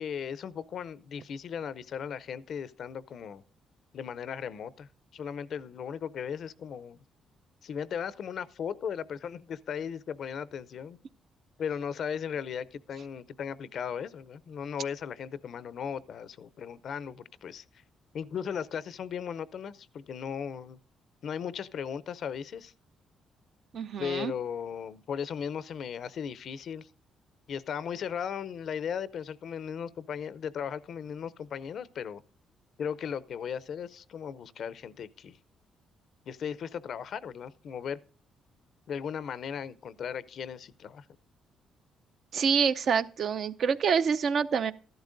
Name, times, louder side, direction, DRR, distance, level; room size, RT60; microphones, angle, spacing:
voice 1, 0.0-3.4 3.9-7.0 7.6-11.0 11.6-17.6 18.1-20.8 21.2-22.7 24.0-26.9 27.5-32.2 32.8-35.4 36.3-38.0 38.9-41.0, left 7 dB, 65° left, 0.5 m, -37 dB
voice 2, 23.7-24.3 42.3-44.7, right 6 dB, 60° right, 0.5 m, -26 dB
13.5 x 12.0 x 2.5 m
cardioid pair, 90°, 0 cm